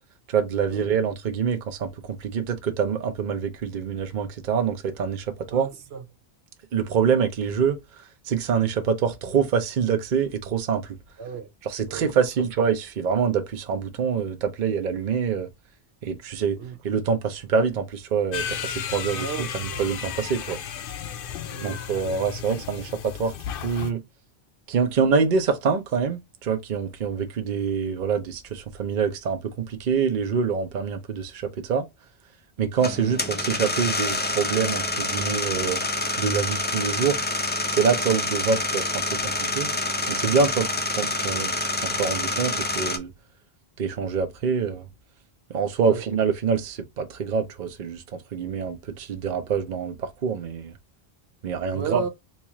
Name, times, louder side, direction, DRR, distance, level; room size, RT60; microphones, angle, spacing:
voice 1, 0.3-5.3 5.5-5.7 6.7-7.8 8.3-11.0 11.7-15.5 16.0-16.6 16.8-20.6 21.6-23.3 23.6-24.0 24.7-31.8 32.6-35.8 36.2-37.2 37.7-39.0 39.4-39.7 40.1-40.7 41.0-41.6 41.8-43.1 43.8-44.9 45.5-50.7 51.4-52.0, right 6 dB, 50° right, 0.8 m, -25 dB
voice 2, 5.5-6.0 11.2-11.5 11.9-12.5 16.6-16.8 19.1-19.9 21.5-21.7 45.8-46.0 51.7-52.1, right 6 dB, 85° right, 1.0 m, -34 dB
sound 1, 18.3-23.9, left 8 dB, 65° left, 0.7 m, -34 dB
sound 2, 32.8-43.0, left 2 dB, 15° left, 0.3 m, -27 dB
4.2 x 2.4 x 2.9 m
omnidirectional pair, 1.1 m